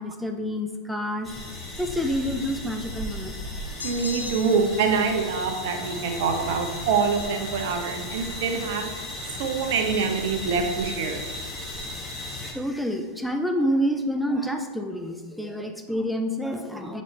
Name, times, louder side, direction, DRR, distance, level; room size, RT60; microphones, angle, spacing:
voice 1, 0.0-1.3 1.8-3.3 12.4-17.0, equal, ahead, 4 dB, 0.5 m, -28 dB
sound 1, 1.2-12.5, left 1 dB, 15° left, 1.0 m, -35 dB
sound 2, 3.8-4.8, left 4 dB, 75° left, 0.5 m, -36 dB
voice 2, 3.8-8.9 9.4-11.2, right 5 dB, 50° right, 5 dB, 0.7 m, -25 dB
7.8 x 4.1 x 3.2 m, 1.4 s
figure-of-eight pair, 90°, 0 cm